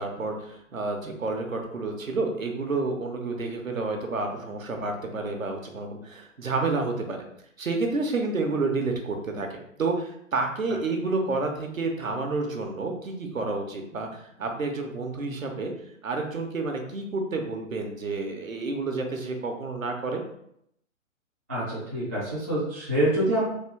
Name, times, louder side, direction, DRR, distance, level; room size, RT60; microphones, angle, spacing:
voice 1, 0.0-7.2 7.6-9.5 9.8-15.7 16.0-20.2, right 3 dB, 80° right, 3 dB, 0.9 m, -29 dB
voice 2, 21.5-23.4, right 1 dB, 10° right, -10 dB, 0.4 m, -26 dB
3.6 x 2.4 x 3.4 m, 0.74 s
figure-of-eight pair, 125°, 40 cm